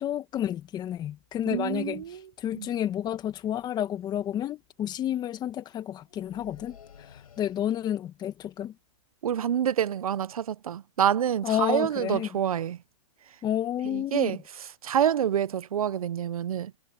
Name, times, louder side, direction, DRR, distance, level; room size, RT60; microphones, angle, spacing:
voice 1, 0.0-8.7 11.4-12.3 13.4-14.4, left 11 dB, 20° left, 1.8 m, -31 dB
voice 2, 1.5-2.2 2.6-2.7 9.2-12.8 13.9-14.4 14.8-16.7, right 9 dB, 75° right, 1.0 m, -27 dB
sound 1, 4.0-4.3 6.0-8.0, left 8 dB, 80° left, 6.5 m, -53 dB
hypercardioid pair, 135°, 18 cm